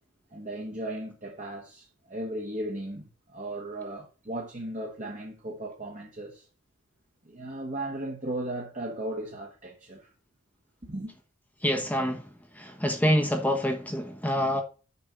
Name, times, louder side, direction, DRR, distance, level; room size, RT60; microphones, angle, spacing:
voice 1, 0.3-6.5 7.2-10.1 10.8-11.1, right 1 dB, 35° right, 1.4 m, -36 dB
voice 2, 11.6-14.6, equal, 5° left, 1.1 m, -27 dB
6.8 x 5.3 x 6.6 m
head